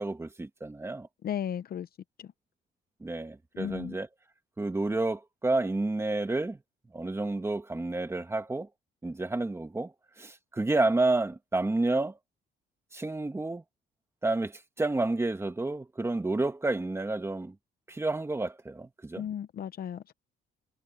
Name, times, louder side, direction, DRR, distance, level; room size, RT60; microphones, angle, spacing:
voice 1, 0.0-1.1 3.0-4.1 4.6-6.6 6.9-8.7 9.0-9.9 10.2-12.2 12.9-13.6 14.2-17.5 17.9-19.3, right 2 dB, 15° right, 1.9 m, -30 dB
voice 2, 1.2-1.9 2.2-2.3 3.5-4.0 19.1-20.1, left 9 dB, 50° left, 0.8 m, -35 dB
cardioid pair, 130°, 20 cm